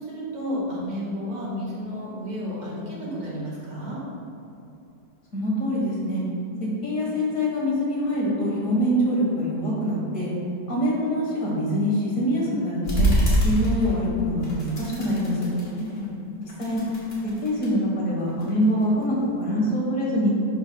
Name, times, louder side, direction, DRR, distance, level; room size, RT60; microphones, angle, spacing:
voice 1, 0.0-4.0 15.8-16.2, equal, 80° right, -6 dB, 2.4 m, -32 dB
voice 2, 5.3-6.2 6.8-10.3 10.7-13.1 13.4-15.5 16.6-16.8 17.4-20.3, equal, 50° left, -5 dB, 1.9 m, -24 dB
sound 1, 12.8-14.1 14.4-16.0 16.4-17.7 18.3-19.4, right 1 dB, 35° left, 1.6 m, -26 dB
11.5 x 4.6 x 2.3 m, 2.8 s
omnidirectional pair, 1.9 m